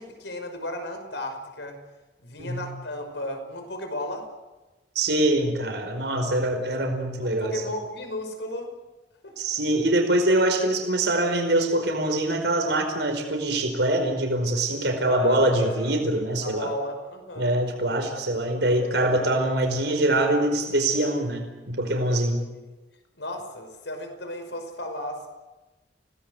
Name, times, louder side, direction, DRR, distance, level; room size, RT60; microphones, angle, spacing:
voice 1, 0.0-1.8 2.2-4.3 7.2-8.7 9.2-9.3 15.0-16.0 16.4-17.6 23.2-25.3, left 1 dB, 85° left, 6 dB, 5.7 m, -34 dB
voice 2, 4.9-7.6 9.4-16.7 17.4-22.4, right 1 dB, 80° right, 4 dB, 5.0 m, -24 dB
30.0 x 19.0 x 8.1 m, 1.1 s
head